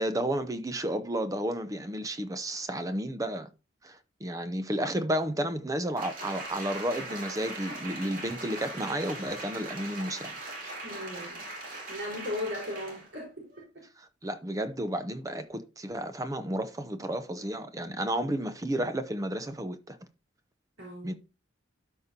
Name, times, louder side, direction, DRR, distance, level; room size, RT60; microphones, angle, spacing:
voice 1, 0.0-3.5 3.8-10.3 14.0-20.0 21.0-21.1, right 1 dB, 20° right, 0.6 m, -32 dB
Applause, 6.0-13.1 13.5-13.6, right 2 dB, 45° right, 2.8 m, -40 dB
voice 2, 10.8-11.5 11.9-13.4 20.8-21.2, left 1 dB, 80° right, 3.8 m, -37 dB
12.5 x 5.1 x 2.8 m
head